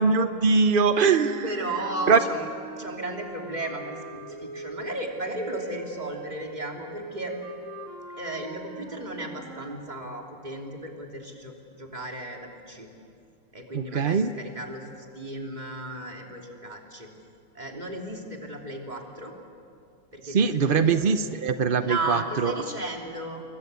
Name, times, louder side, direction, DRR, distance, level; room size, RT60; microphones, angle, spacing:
voice 1, 0.0-1.4 2.1-2.2 13.7-14.3 20.2-22.5, right 5 dB, 70° right, 10 dB, 0.5 m, -22 dB
sound 1, 1.1-9.8, right 3 dB, 40° right, 1.9 m, -42 dB
voice 2, 1.4-2.5 2.8-7.3 8.2-12.4 12.7-12.9 13.5-14.8 15.1-17.1 17.5-19.3 20.1-20.9 21.8-23.4, right 1 dB, 20° right, 1 dB, 3.2 m, -34 dB
29.0 x 22.5 x 8.2 m, 2.4 s
omnidirectional pair, 2.1 m